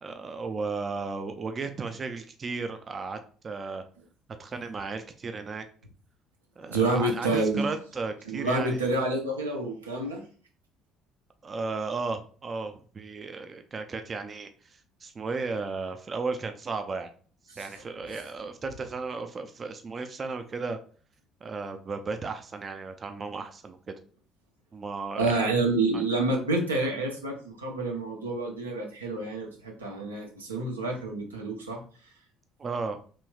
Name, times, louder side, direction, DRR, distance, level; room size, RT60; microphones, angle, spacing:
voice 1, 0.0-3.8 4.4-5.7 6.6-8.9 11.4-17.1 17.5-20.8 21.4-23.9 24.7-25.4 25.9-26.0 32.6-33.0, right 4 dB, 35° right, 7 dB, 0.3 m, -35 dB
voice 2, 6.6-7.7 8.3-10.2 17.5-17.7 18.1-18.2 25.2-31.8, right 2 dB, 90° right, 0 dB, 0.5 m, -28 dB
3.0 x 3.0 x 2.2 m, 0.42 s
hypercardioid pair, 55°, 0 cm